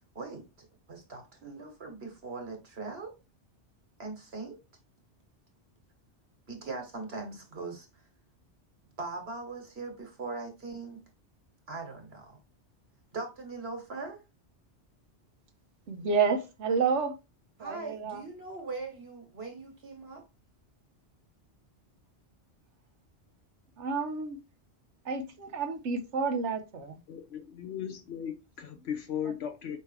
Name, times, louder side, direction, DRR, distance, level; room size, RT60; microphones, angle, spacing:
voice 1, 0.1-3.1 4.0-4.6 6.5-8.0 9.0-11.0 11.7-12.4 13.1-14.2 17.6-20.2, right 3 dB, 65° right, 1.6 m, -40 dB
voice 2, 15.9-17.1 17.6-18.2 23.8-24.4 25.1-26.9 29.2-29.3, right 5 dB, 90° right, 1.1 m, -30 dB
voice 3, 27.1-29.8, left 9 dB, 70° left, 0.8 m, -37 dB
4.6 x 3.3 x 3.2 m
omnidirectional pair, 1.2 m